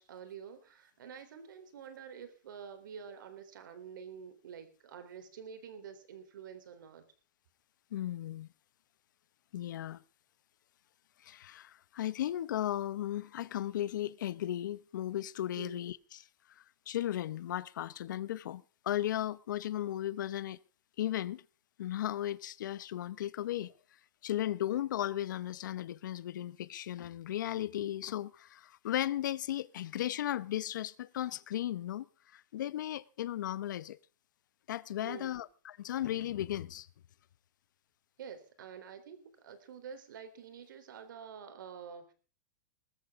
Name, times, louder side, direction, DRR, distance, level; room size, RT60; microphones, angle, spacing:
voice 1, 0.0-7.1 15.6-15.9 35.0-35.4 38.2-42.1, right 7 dB, 75° right, 3.6 m, -48 dB
voice 2, 7.9-8.5 9.5-10.0 11.2-16.2 16.9-20.6 21.0-21.4 21.8-23.7 24.2-32.0 32.3-34.0 34.7-36.9, left 12 dB, 70° left, 0.8 m, -36 dB
20.5 x 14.0 x 3.7 m
supercardioid pair, 175°, 11 cm